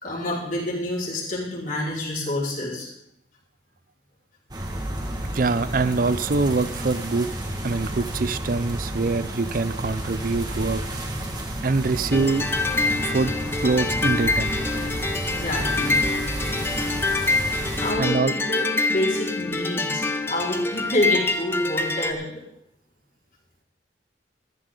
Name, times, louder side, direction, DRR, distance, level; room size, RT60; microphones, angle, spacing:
voice 1, 0.0-2.9 15.0-16.0 17.8-22.3, left 1 dB, 50° left, -5 dB, 4.9 m, -28 dB
sound 1, 4.5-17.9, right 1 dB, 25° right, 1.8 m, -31 dB
voice 2, 5.3-7.3 7.6-10.8 11.6-12.5 13.0-13.3 13.6-14.6 18.0-18.3, right 3 dB, 50° right, 15 dB, 0.5 m, -24 dB
sound 2, 12.1-22.1, left 3 dB, 15° left, 0.9 m, -25 dB
14.5 x 14.0 x 3.9 m, 0.76 s
head